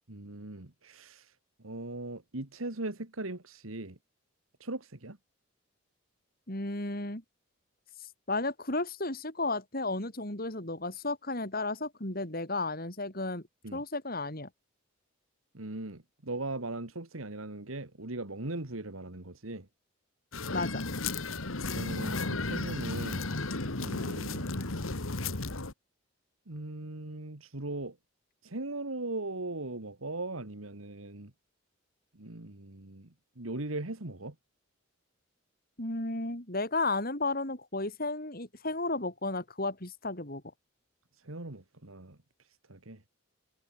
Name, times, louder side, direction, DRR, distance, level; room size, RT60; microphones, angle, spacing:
voice 1, 0.1-1.3 1.6-4.0 4.6-5.2 13.6-13.8 15.5-19.7 21.7-23.2 23.8-24.5 26.5-28.0 28.4-31.3 32.1-33.1 33.4-34.3 41.2-42.2 42.7-43.0, right 2 dB, 85° right, 2.3 m, -39 dB
voice 2, 6.5-7.2 8.3-13.4 13.7-14.5 20.5-20.8 35.8-40.4, left 2 dB, 45° left, 4.3 m, -33 dB
sound 1, 20.3-25.7, left 3 dB, 80° left, 2.0 m, -34 dB
head